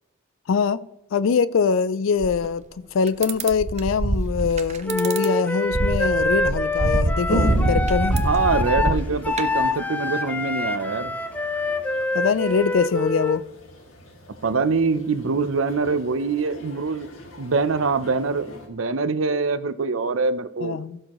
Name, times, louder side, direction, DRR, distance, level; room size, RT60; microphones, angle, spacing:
voice 1, 0.5-0.8 1.1-8.2 12.1-13.4 20.6-21.0, left 5 dB, 70° left, 0.4 m, -23 dB
sound 1, 2.2-2.4 3.1-5.2 5.7-9.7, right 2 dB, 35° right, 0.7 m, -24 dB
Wind instrument woodwind instrument, 4.9-13.4, left 2 dB, 10° left, 0.5 m, -26 dB
Toilet flush, 7.2-18.7, equal, 90° left, 2.3 m, -38 dB
voice 2, 8.2-11.1 14.4-17.1 17.4-20.8, right 4 dB, 80° right, 0.7 m, -24 dB
16.0 x 6.3 x 3.0 m
head